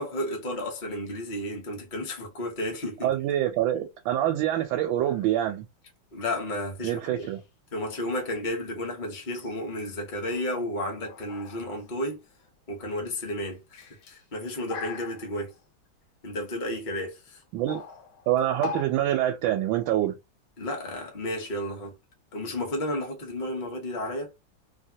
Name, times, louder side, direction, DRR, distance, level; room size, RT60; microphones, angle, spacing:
voice 1, 0.0-3.2 6.1-7.3 7.7-12.2 12.7-13.6 14.1-15.5 16.2-17.4 20.6-21.9 22.3-24.3, left 1 dB, 40° left, 0.6 m, -32 dB
voice 2, 3.0-5.7 6.8-7.4 17.5-17.8 18.3-20.1, right 12 dB, 80° right, 1.3 m, -25 dB
sound 1, 5.1-5.4 7.2-7.4 9.3-9.7 10.2-10.7 11.0-12.8 13.5-15.6 16.4-16.5 17.4-18.8, left 6 dB, 60° left, 1.0 m, -41 dB
3.3 x 2.2 x 2.7 m
omnidirectional pair, 2.1 m